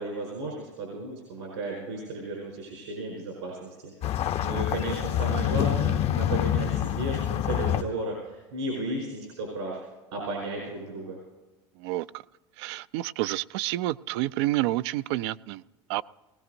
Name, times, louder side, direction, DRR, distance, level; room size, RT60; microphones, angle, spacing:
voice 1, 0.0-9.8 10.1-11.2, right 2 dB, 85° right, -2 dB, 4.7 m, -34 dB
sound 1, 4.0-7.8, left 11 dB, 45° left, 0.6 m, -26 dB
voice 2, 11.8-12.2 12.6-15.6 15.9-16.0, right 16 dB, 70° right, 17 dB, 0.4 m, -29 dB
20.0 x 17.5 x 2.7 m, 1.2 s
hypercardioid pair, 90°, 14 cm